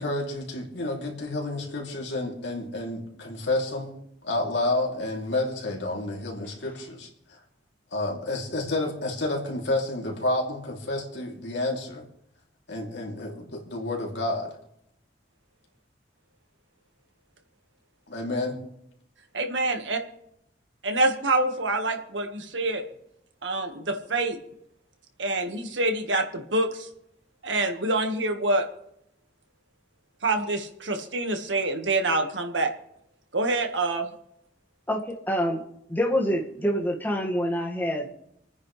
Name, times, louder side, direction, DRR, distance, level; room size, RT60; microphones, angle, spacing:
voice 1, 0.0-4.0 4.2-7.4 7.9-12.0 12.7-14.6 18.1-18.6, left 2 dB, 75° left, -1 dB, 3.1 m, -30 dB
voice 2, 19.3-20.0 20.8-22.8 23.4-24.4 25.2-26.9 27.4-28.7 30.2-32.7 33.3-34.1, right 2 dB, 85° right, 5 dB, 1.6 m, -26 dB
voice 3, 34.9-35.6 35.9-38.2, equal, 10° left, -2 dB, 1.9 m, -26 dB
28.0 x 9.6 x 3.3 m, 0.78 s
head